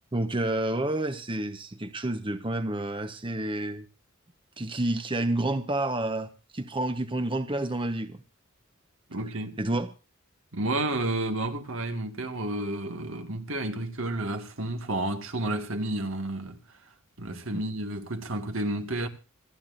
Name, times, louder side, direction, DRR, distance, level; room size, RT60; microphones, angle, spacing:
voice 1, 0.1-3.9 4.6-8.2 9.6-9.9, right 1 dB, 25° right, 1.1 m, -29 dB
voice 2, 9.1-9.6 10.5-16.6 17.2-19.1, right 1 dB, 70° right, 2.1 m, -31 dB
27.0 x 9.6 x 2.7 m
head